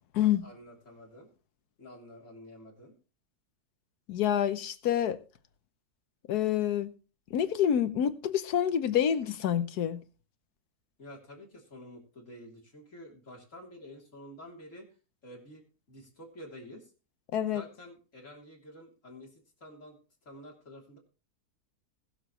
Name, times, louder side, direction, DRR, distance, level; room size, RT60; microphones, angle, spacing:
voice 1, 0.2-1.3 1.8-3.0 11.0-14.9 15.2-15.6 15.9-16.9 17.5-20.0 20.2-21.0, left 1 dB, 50° left, 3.6 m, -49 dB
voice 2, 4.1-5.2 6.3-6.9 7.3-10.0 17.3-17.6, left 10 dB, 80° left, 1.4 m, -27 dB
20.5 x 7.0 x 3.1 m
omnidirectional pair, 1.7 m